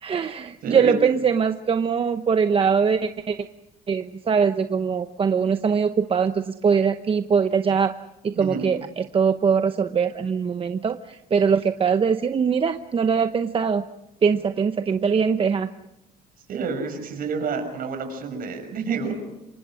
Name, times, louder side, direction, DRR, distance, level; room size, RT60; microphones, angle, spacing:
voice 1, 0.0-3.4 3.9-7.9 8.2-13.8 14.2-15.7, right 6 dB, 35° right, 9 dB, 0.9 m, -22 dB
voice 2, 0.6-1.0 8.3-8.7 16.5-19.1, right 5 dB, 60° right, 6 dB, 6.2 m, -29 dB
27.0 x 24.0 x 6.3 m, 0.90 s
cardioid pair, 110°, 17 cm